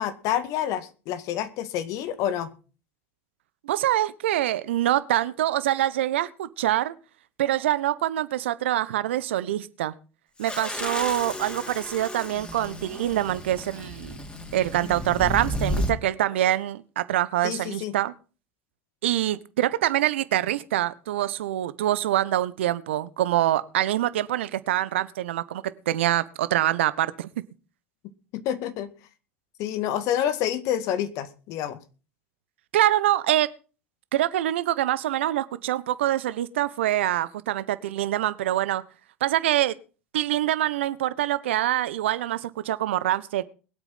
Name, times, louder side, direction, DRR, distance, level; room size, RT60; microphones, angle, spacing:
voice 1, 0.0-2.5 17.4-17.9 28.3-28.9 29.6-31.8, left 10 dB, 60° left, 2.1 m, -28 dB
voice 2, 3.6-6.9 7.4-9.9 10.4-14.2 14.5-18.1 19.0-27.3 32.7-33.5 34.1-38.8 39.2-39.7 40.1-43.4, right 13 dB, 75° right, 1.2 m, -25 dB
sound 1, 10.4-15.9, left 1 dB, 15° left, 3.9 m, -33 dB
21.5 x 8.4 x 5.7 m
hypercardioid pair, 75°, 6 cm